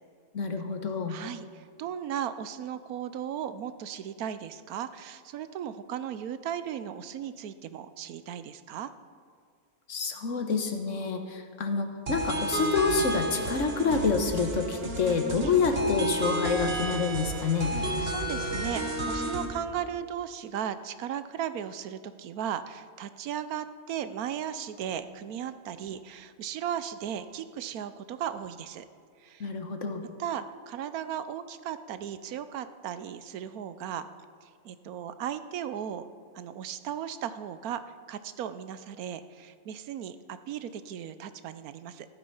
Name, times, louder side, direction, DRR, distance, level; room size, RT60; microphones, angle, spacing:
voice 1, 0.3-1.2 9.9-17.7 29.4-30.0, left 4 dB, 60° left, 6 dB, 1.5 m, -28 dB
voice 2, 1.1-8.9 15.4-15.5 17.7-28.9 29.2-29.5 30.2-34.1 34.4-36.1 36.3-37.8 38.1-42.1, right 9 dB, 90° right, 12 dB, 1.2 m, -36 dB
sound 1, 12.1-19.5, right 1 dB, 45° right, 1.5 m, -32 dB
14.5 x 12.0 x 5.6 m, 2.1 s
omnidirectional pair, 1.5 m